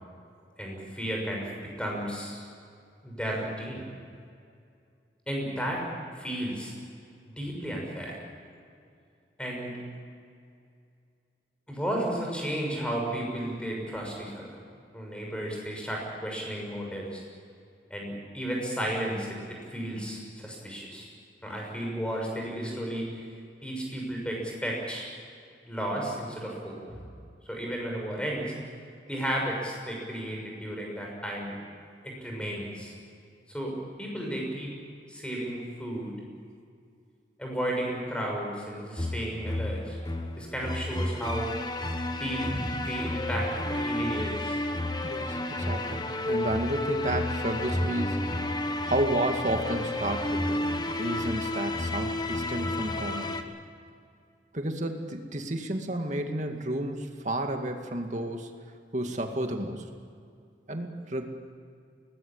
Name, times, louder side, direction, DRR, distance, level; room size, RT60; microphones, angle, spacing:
voice 1, 0.6-2.5 3.0-3.8 5.3-5.8 6.1-6.7 7.4-8.2 9.4-9.7 11.7-14.6 14.9-17.2 17.9-21.1 21.4-23.1 23.6-25.1 25.7-27.0 27.5-28.5 29.1-31.5 32.0-32.9 33.5-34.7 35.1-36.1 37.4-40.0 40.4-41.5 42.1-44.6, right 1 dB, 5° left, -1 dB, 6.3 m, -33 dB
sound 1, 39.0-53.4, left 1 dB, 25° left, 1.3 m, -31 dB
voice 2, 45.0-48.5 48.9-53.4 54.5-58.5 58.9-59.9 60.7-61.2, right 1 dB, 40° right, 4 dB, 2.2 m, -31 dB
22.0 x 19.5 x 8.8 m, 2.3 s
head